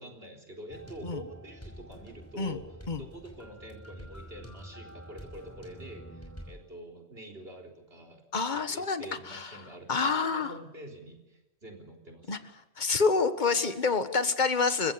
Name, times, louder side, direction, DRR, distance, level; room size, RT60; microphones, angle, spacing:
voice 1, 0.0-2.6 3.0-8.2 8.5-12.4, right 1 dB, 65° right, 2 dB, 4.2 m, -46 dB
sound 1, 0.7-6.5, equal, 15° left, 5.4 m, -47 dB
voice 2, 8.3-9.6 9.9-10.5 12.3-12.4 12.8-14.9, left 4 dB, 45° left, 10 dB, 1.6 m, -27 dB
30.0 x 16.0 x 6.9 m, 1.0 s
omnidirectional pair, 1.1 m